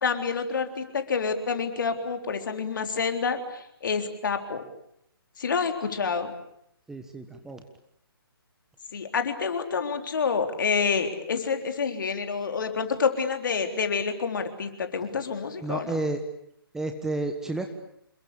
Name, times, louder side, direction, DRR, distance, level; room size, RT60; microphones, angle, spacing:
voice 1, 0.0-4.6 5.4-6.3 8.9-15.9, left 5 dB, 55° left, 6 dB, 3.8 m, -28 dB
voice 2, 6.9-7.6 15.6-16.2 16.7-17.7, right 2 dB, 5° right, 5 dB, 1.4 m, -31 dB
27.5 x 22.5 x 8.6 m, 0.73 s
figure-of-eight pair, 140°, 13 cm